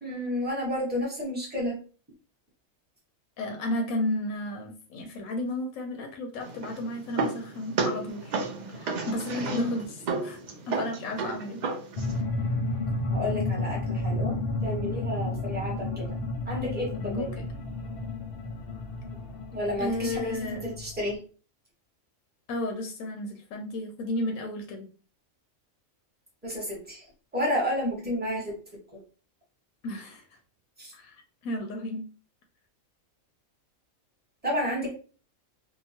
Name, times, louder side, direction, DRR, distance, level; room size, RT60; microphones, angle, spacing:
voice 1, 0.0-1.8 9.3-9.7 13.1-14.4 14.6-16.0 16.4-17.3 19.5-21.2 26.4-27.0 27.3-28.5 28.9-29.0 30.8-30.9 34.4-34.9, left 1 dB, 10° right, -4 dB, 0.9 m, -31 dB
voice 2, 3.4-8.3 8.7-10.4 10.7-11.6 17.0-17.4 19.8-20.6 22.5-24.9 29.8-30.4 30.9-32.0, left 1 dB, 85° left, 3 dB, 1.0 m, -33 dB
sound 1, 6.4-12.2, right 4 dB, 75° right, 0.4 m, -33 dB
sound 2, 12.0-21.2, left 2 dB, 55° left, 0.8 m, -32 dB
2.8 x 2.2 x 2.7 m, 0.38 s
omnidirectional pair, 1.4 m